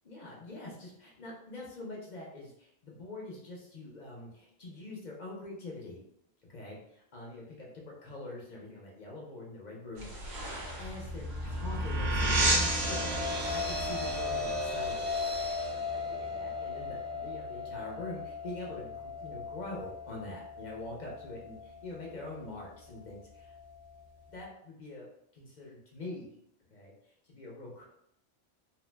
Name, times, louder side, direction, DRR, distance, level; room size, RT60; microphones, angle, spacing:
voice 1, 0.0-6.0 6.5-10.4 10.8-15.1 15.4-23.5 24.3-25.1 25.3-26.2 26.7-26.9 27.2-27.9, left 2 dB, 45° left, -3 dB, 0.6 m, -44 dB
sound 1, 10.0-15.7, right 1 dB, 85° right, 1.1 m, -46 dB
sound 2, 10.4-15.8, right 1 dB, 50° right, 0.9 m, -32 dB
sound 3, 12.1-24.4, left 3 dB, 70° right, 0.3 m, -38 dB
2.7 x 2.0 x 3.2 m, 0.75 s
omnidirectional pair, 1.2 m